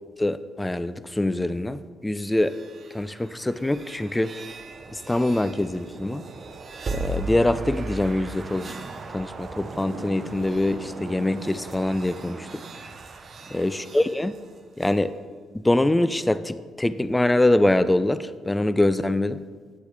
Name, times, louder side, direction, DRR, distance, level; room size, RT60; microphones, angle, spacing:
voice 1, 0.2-2.6 2.9-4.3 4.9-6.2 6.9-8.7 9.1-12.5 13.5-14.3 14.8-15.2 15.6-19.4, left 1 dB, 10° left, 14 dB, 0.3 m, -24 dB
sound 1, 2.2-15.0, right 3 dB, 45° right, 0.7 m, -37 dB
9.5 x 8.1 x 3.3 m, 1.5 s
cardioid pair, 90°, 0 cm